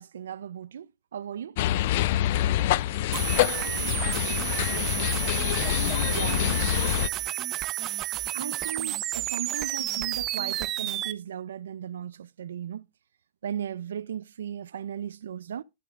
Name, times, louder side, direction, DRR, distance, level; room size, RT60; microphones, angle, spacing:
voice 1, 0.0-1.6 6.1-6.6 8.3-12.9 13.4-15.6, right 9 dB, 80° right, 0.5 m, -36 dB
sound 1, 1.6-7.1, left 13 dB, 50° left, 0.4 m, -26 dB
voice 2, 1.8-5.5 6.1-7.5 7.9-8.0, right 10 dB, 45° right, 1.4 m, -55 dB
sound 2, 3.1-11.1, right 14 dB, 25° right, 0.6 m, -31 dB
11.5 x 8.3 x 2.4 m
hypercardioid pair, 145°, 0 cm